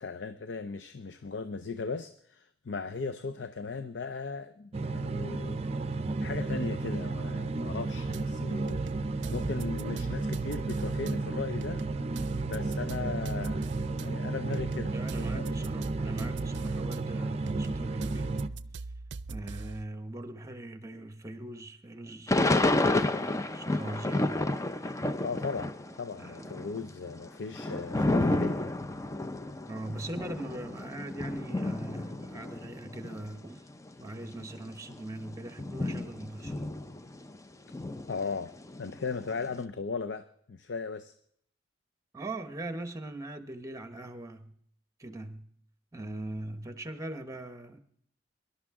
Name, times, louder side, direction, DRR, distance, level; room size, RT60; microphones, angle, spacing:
voice 1, 0.0-5.6 6.2-8.8 9.3-11.8 12.5-13.6 14.0-15.6 25.2-28.6 38.1-38.5 38.8-41.1, left 4 dB, 80° left, 0.6 m, -37 dB
sound 1, 4.7-18.5, right 3 dB, 35° right, 0.6 m, -33 dB
sound 2, 8.1-8.2 8.7-11.1 11.6-14.1 14.5-17.0 17.5-19.8, right 3 dB, 80° right, 0.5 m, -41 dB
voice 2, 14.9-18.4 19.3-23.2 23.5-24.3 26.2-26.5 29.7-33.7 34.0-36.7 42.1-44.5 45.0-45.5 45.9-47.8, right 1 dB, 20° right, 1.0 m, -41 dB
Thunder / Rain, 22.3-25.9 26.2-33.3 33.9-34.0 34.2-37.4 37.7-39.4, left 2 dB, 20° left, 0.5 m, -31 dB
24.0 x 11.5 x 3.7 m
head